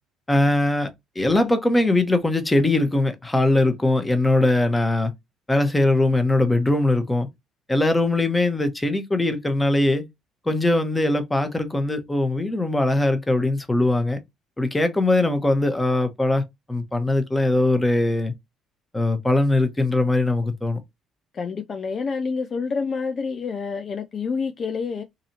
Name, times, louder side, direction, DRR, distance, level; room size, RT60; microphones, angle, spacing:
voice 1, 0.3-0.9 1.1-5.1 5.5-7.3 7.7-10.1 10.5-14.2 14.6-16.4 16.7-18.3 18.9-20.8, left 2 dB, 15° left, 1.0 m, -21 dB
voice 2, 21.3-25.0, left 5 dB, 40° left, 0.4 m, -28 dB
3.9 x 2.7 x 2.8 m
figure-of-eight pair, 50°, 0 cm